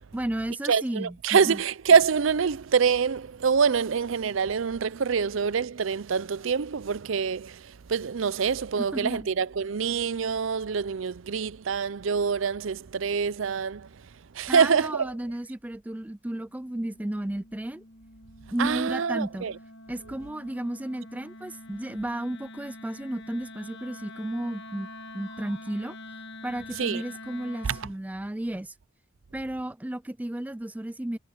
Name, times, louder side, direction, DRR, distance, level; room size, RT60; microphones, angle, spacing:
voice 1, 0.1-1.6 8.8-9.3 14.5-17.8 18.5-19.5 19.9-24.9 25.1-26.0 26.4-28.7 29.3-31.2, right 1 dB, 10° right, 0.4 m, -33 dB
voice 2, 0.7-13.9 14.3-15.1 18.6-19.5 26.8-27.0 27.6-27.8, right 6 dB, 70° right, 0.5 m, -25 dB
Wind instrument woodwind instrument, 16.5-28.0, left 2 dB, 60° left, 1.5 m, -46 dB
head